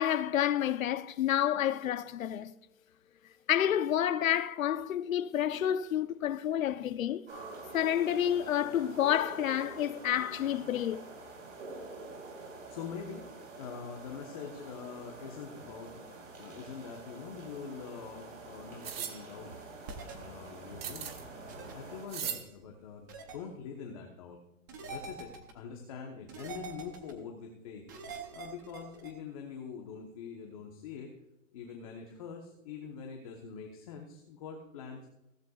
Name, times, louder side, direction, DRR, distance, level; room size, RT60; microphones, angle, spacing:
voice 1, 0.0-2.5 3.5-7.3 7.7-11.0, left 10 dB, 80° left, 0.9 m, -29 dB
sound 1, 7.3-22.1, right 3 dB, 65° right, 5.0 m, -47 dB
voice 2, 12.7-13.2 13.6-16.1 16.4-19.5 20.0-21.1 21.6-24.4 24.8-27.8 28.3-31.1 31.5-35.0, left 6 dB, 25° left, 1.1 m, -44 dB
sound 2, 18.8-19.2 20.8-21.3 22.1-22.4, right 8 dB, 45° right, 1.5 m, -37 dB
sound 3, 19.9-20.1 21.5-21.7 23.1-23.4 24.7-25.5 26.3-27.1 27.9-29.1, right 4 dB, 15° right, 0.7 m, -44 dB
16.0 x 14.5 x 2.4 m
hypercardioid pair, 175°, 40 cm